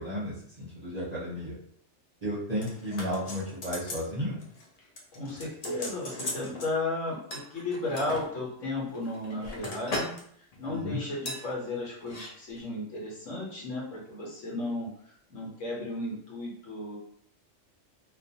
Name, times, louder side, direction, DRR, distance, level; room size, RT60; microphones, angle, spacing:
voice 1, 0.0-1.6 2.2-4.4 10.7-11.0, equal, 40° right, -7 dB, 0.7 m, -33 dB
sound 1, 2.6-4.1 4.4-4.7 5.0-6.7 7.3-8.2 8.9-10.2 10.5-10.7 11.3-11.4 12.0-12.3 12.6-12.7, left 1 dB, 55° left, 0.4 m, -38 dB
voice 2, 5.1-10.1 10.6-14.9 15.3-17.0, left 2 dB, 80° left, -3 dB, 1.2 m, -34 dB
2.4 x 2.3 x 2.7 m, 0.64 s
omnidirectional pair, 1.3 m